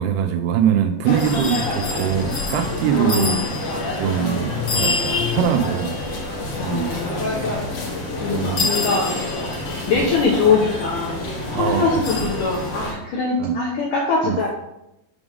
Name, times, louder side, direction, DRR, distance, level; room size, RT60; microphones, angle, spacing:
voice 1, 0.0-3.4 4.0-6.0 6.6-7.0 8.3-9.0 9.9-10.1 11.5-12.0 13.4-13.6 14.2-14.6, right 9 dB, 85° right, 7 dB, 2.5 m, -23 dB
sound 1, 1.0-12.9, left 2 dB, 60° left, 1.8 m, -26 dB
voice 2, 2.9-3.5 6.6-7.4 8.2-9.2 9.9-11.2 11.5-14.6, left 4 dB, 75° left, -2 dB, 2.0 m, -22 dB
7.1 x 3.5 x 6.2 m, 0.85 s
omnidirectional pair, 5.0 m